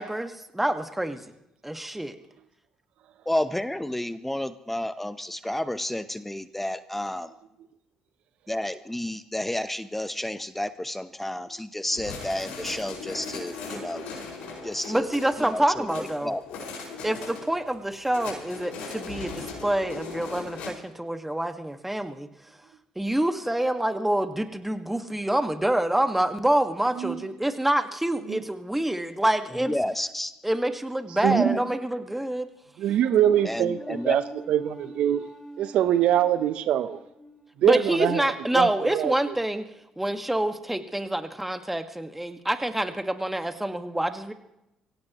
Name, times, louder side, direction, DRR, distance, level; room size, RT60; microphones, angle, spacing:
voice 1, 0.0-1.3 1.6-2.2 14.8-16.4 17.0-22.3 23.0-29.7 30.4-32.5 37.6-39.6 40.0-44.3, right 1 dB, 10° right, 1.7 m, -27 dB
voice 2, 3.3-7.3 8.5-14.0 14.6-16.4 29.6-30.3 31.3-31.6 33.4-34.2, left 1 dB, 10° left, 0.9 m, -31 dB
sound 1, 11.9-20.7, left 4 dB, 70° left, 5.3 m, -39 dB
voice 3, 31.2-31.6 32.8-34.2 34.5-35.3 35.6-37.0 37.6-38.2 38.5-39.1, right 11 dB, 65° right, 0.8 m, -23 dB
sound 2, 33.2-39.6, right 1 dB, 25° left, 3.2 m, -47 dB
24.5 x 16.5 x 3.1 m
hypercardioid pair, 50°, 2 cm